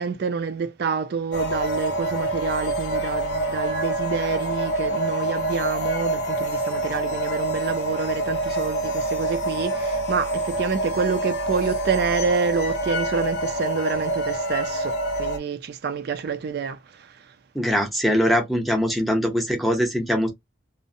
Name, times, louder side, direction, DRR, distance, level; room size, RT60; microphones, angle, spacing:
voice 1, 0.0-17.3, right 5 dB, 60° right, 0.4 m, -28 dB
sound 1, 1.3-15.4, right 1 dB, 60° left, 0.6 m, -26 dB
voice 2, 17.5-20.3, equal, ahead, 0.7 m, -22 dB
2.5 x 2.1 x 2.5 m
head